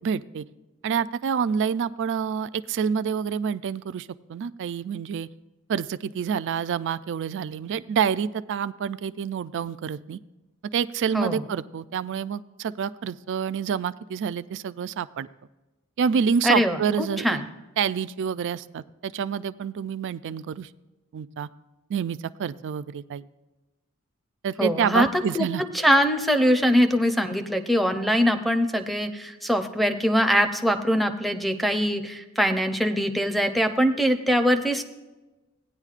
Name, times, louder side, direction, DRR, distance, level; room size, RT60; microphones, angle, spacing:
voice 1, 0.0-0.4 0.8-5.3 5.7-10.2 10.7-15.3 16.0-17.4 17.8-20.7 21.1-21.5 21.9-23.2 24.4-25.6, right 7 dB, 55° right, 15 dB, 0.3 m, -27 dB
voice 2, 16.4-17.5 24.6-25.5 25.7-34.8, equal, ahead, 4 dB, 0.6 m, -22 dB
17.0 x 9.7 x 2.4 m, 1.1 s
head